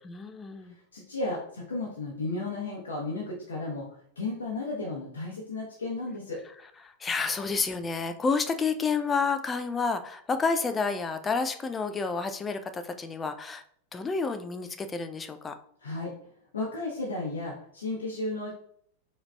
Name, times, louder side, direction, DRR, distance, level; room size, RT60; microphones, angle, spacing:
voice 1, 0.0-0.7 7.0-13.6 13.9-15.5, left 4 dB, 15° left, 8 dB, 0.3 m, -29 dB
voice 2, 0.9-3.9 4.2-6.4 15.8-16.1 16.5-18.5, left 2 dB, 70° left, -3 dB, 0.7 m, -33 dB
4.6 x 3.1 x 2.2 m, 0.64 s
figure-of-eight pair, 90°, 0 cm